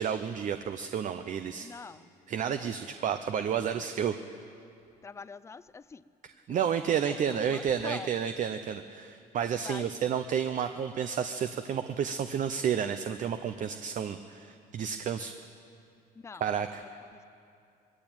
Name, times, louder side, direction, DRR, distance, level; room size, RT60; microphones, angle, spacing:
voice 1, 0.0-1.7 2.3-4.4 6.2-15.4 16.4-16.8, right 8 dB, 50° right, 9 dB, 0.7 m, -31 dB
voice 2, 1.6-2.1 2.5-2.7 3.7-3.8 5.0-6.1 6.5-6.7 7.0-8.1 9.5-9.9 16.2-16.4 17.1-17.2, left 5 dB, 15° left, 15 dB, 0.5 m, -44 dB
20.5 x 15.0 x 8.8 m, 2.5 s
cardioid pair, 110°, 17 cm